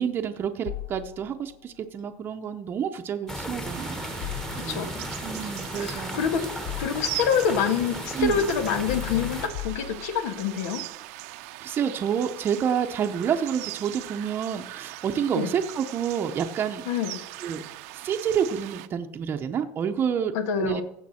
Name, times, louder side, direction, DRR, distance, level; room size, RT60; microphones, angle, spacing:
voice 1, 0.0-4.0 4.5-6.2 8.1-8.5 11.6-16.8 17.4-17.6 17.9-20.3 20.6-20.8, right 8 dB, 25° right, 5 dB, 0.7 m, -28 dB
sound 1, 0.7-1.5 4.2-5.1 6.0-7.3 8.2-10.4, left 13 dB, 50° left, 0.6 m, -37 dB
sound 2, 3.3-9.5, equal, 5° left, 1.2 m, -36 dB
sound 3, 3.7-18.9, right 18 dB, 75° right, 0.7 m, -40 dB
voice 2, 4.5-4.9 5.7-6.4 6.8-10.8 15.3-15.5 16.9-17.2 20.3-20.8, left 6 dB, 90° left, 9 dB, 1.7 m, -26 dB
16.0 x 7.2 x 4.3 m, 0.78 s
cardioid pair, 160°, 8 cm